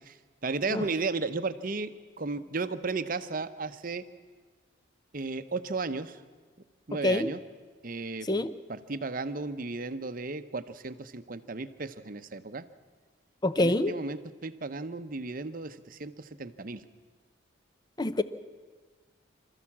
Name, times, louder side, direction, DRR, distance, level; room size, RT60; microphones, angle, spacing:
voice 1, 0.4-4.0 5.1-6.2 6.9-7.4 7.8-8.3 8.7-12.6 13.6-16.8, right 3 dB, 45° right, 11 dB, 0.8 m, -34 dB
voice 2, 8.2-8.5 13.4-13.9 18.0-18.2, left 2 dB, 20° left, 13 dB, 0.6 m, -26 dB
26.0 x 14.0 x 7.3 m, 1.4 s
head